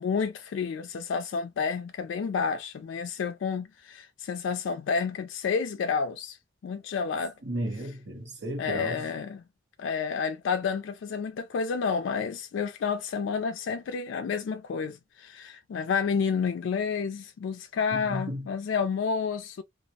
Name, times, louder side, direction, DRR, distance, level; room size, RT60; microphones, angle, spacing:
voice 1, 0.0-6.4 6.6-7.3 8.6-9.4 9.8-19.6, left 5 dB, 70° left, 0.3 m, -30 dB
voice 2, 7.4-9.1 17.9-18.4, equal, 65° right, 1.0 m, -34 dB
2.4 x 2.0 x 2.7 m
head